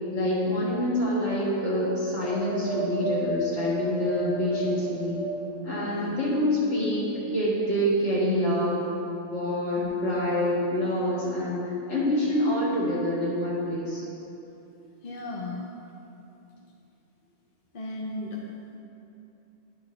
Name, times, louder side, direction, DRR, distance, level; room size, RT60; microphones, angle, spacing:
voice 1, 0.1-5.2 5.6-8.9 9.3-11.6 11.9-14.1, equal, 75° left, -7 dB, 2.0 m, -26 dB
Wind, 2.2-5.7 6.3-7.3 8.1-8.2, right 1 dB, 55° right, 1.4 m, -33 dB
voice 2, 5.8-6.2 9.8-9.9 15.0-15.6 17.7-18.4, left 3 dB, 50° left, -3 dB, 0.9 m, -36 dB
10.5 x 4.6 x 3.2 m, 2.8 s
omnidirectional pair, 1.2 m